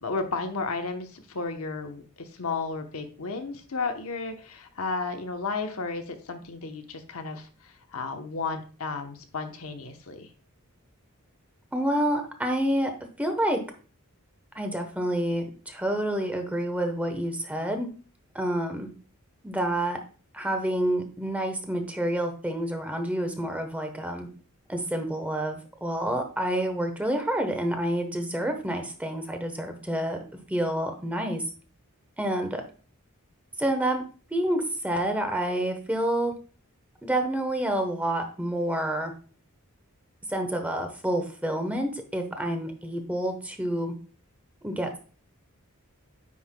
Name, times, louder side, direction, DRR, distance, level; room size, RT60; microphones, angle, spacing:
voice 1, 0.0-10.3, left 4 dB, 75° left, 5 dB, 0.9 m, -33 dB
voice 2, 11.7-12.9 13.2-13.6 14.5-17.9 18.3-18.9 19.4-20.0 20.3-24.3 24.7-30.2 30.5-31.4 32.2-32.6 33.6-34.0 34.3-36.3 37.0-39.1 40.3-43.9 44.6-45.0, right 1 dB, 5° right, 5 dB, 0.9 m, -28 dB
9.5 x 5.6 x 2.2 m, 0.38 s
head